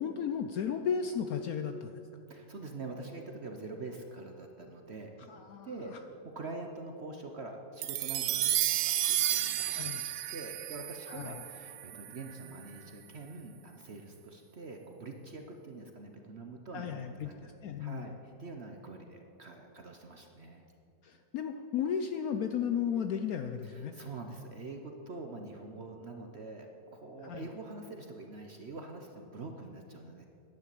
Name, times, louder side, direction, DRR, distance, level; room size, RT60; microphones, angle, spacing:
voice 1, 0.0-1.9 5.3-5.7 9.7-10.0 11.1-11.4 16.7-17.3 17.6-18.1 21.0-23.9 27.2-27.4, left 7 dB, 70° left, 7 dB, 0.9 m, -34 dB
voice 2, 2.3-5.3 5.6-6.0 6.2-10.0 10.3-17.5 17.8-20.7 23.6-26.7 26.9-30.3, right 3 dB, 45° right, 3 dB, 0.9 m, -45 dB
sound 1, 7.8-12.3, right 12 dB, 85° right, 1.3 m, -32 dB
10.5 x 10.5 x 7.7 m, 2.8 s
omnidirectional pair, 2.0 m